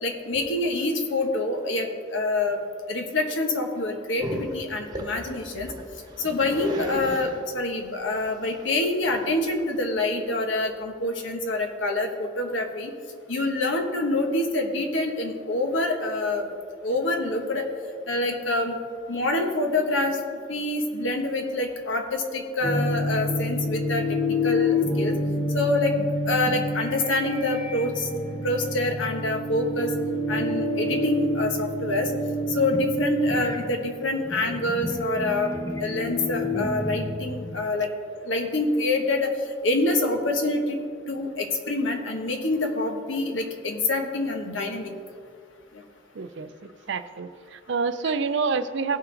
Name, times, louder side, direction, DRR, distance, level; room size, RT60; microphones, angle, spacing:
voice 1, 0.0-2.6 2.9-5.7 6.2-12.9 13.3-16.5 16.8-17.7 18.1-18.8 19.1-20.2 20.5-24.0 24.4-25.1 25.5-26.0 26.3-28.1 28.4-29.9 30.3-32.1 32.5-35.5 35.8-37.9 38.2-39.3 39.6-40.8 41.1-44.9 48.0-48.1, left 2 dB, 80° left, 3 dB, 1.2 m, -26 dB
Growling, 4.2-10.1, right 1 dB, 20° right, 1.1 m, -37 dB
sound 1, 22.6-37.8, left 1 dB, 20° left, 0.8 m, -28 dB
voice 2, 46.2-46.5 46.9-49.0, right 5 dB, 65° right, 11 dB, 0.5 m, -27 dB
16.5 x 5.7 x 3.9 m, 2.2 s
head